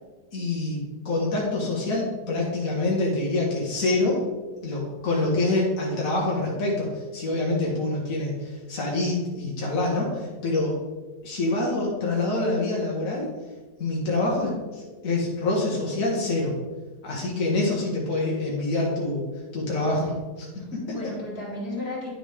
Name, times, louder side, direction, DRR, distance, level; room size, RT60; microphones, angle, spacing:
voice 1, 0.3-4.2 4.6-10.8 11.2-13.3 13.8-16.5 17.0-19.2 19.5-20.1 20.7-20.8, left 2 dB, 55° left, -4 dB, 2.0 m, -26 dB
voice 2, 5.0-5.4 19.8-20.2 20.6-22.1, left 1 dB, 75° left, -3 dB, 2.6 m, -34 dB
9.8 x 7.1 x 3.5 m, 1.3 s
omnidirectional pair, 1.7 m